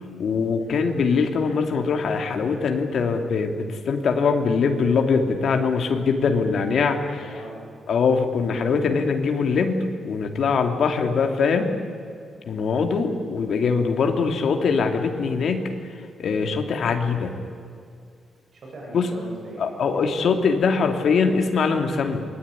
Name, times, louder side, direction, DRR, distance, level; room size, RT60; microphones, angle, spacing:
voice 1, 0.2-7.3 7.9-11.7 12.5-15.7 16.2-17.3 18.9-19.1 19.6-22.2, left 5 dB, 55° left, 4 dB, 2.7 m, -22 dB
voice 2, 7.2-7.6 12.9-13.1 18.5-20.2, right 1 dB, 45° right, -2 dB, 7.6 m, -40 dB
27.5 x 20.5 x 9.8 m, 2.3 s
wide cardioid pair, 170°, 0 cm